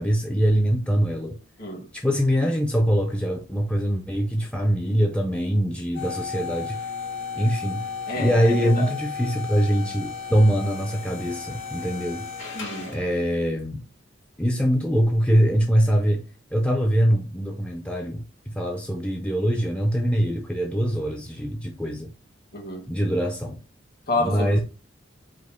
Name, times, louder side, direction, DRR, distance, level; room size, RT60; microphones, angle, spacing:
voice 1, 0.0-1.3 1.9-6.8 7.4-7.8 8.2-12.2 12.9-13.8 14.4-16.2 16.5-22.1 22.9-23.6 24.2-24.6, equal, 5° left, 0.4 m, -23 dB
sound 1, 5.9-13.2, left 6 dB, 80° left, 1.6 m, -34 dB
voice 2, 8.1-8.9 12.5-12.9 22.5-22.8 24.1-24.6, left 1 dB, 50° left, 1.7 m, -29 dB
5.0 x 2.1 x 4.2 m
head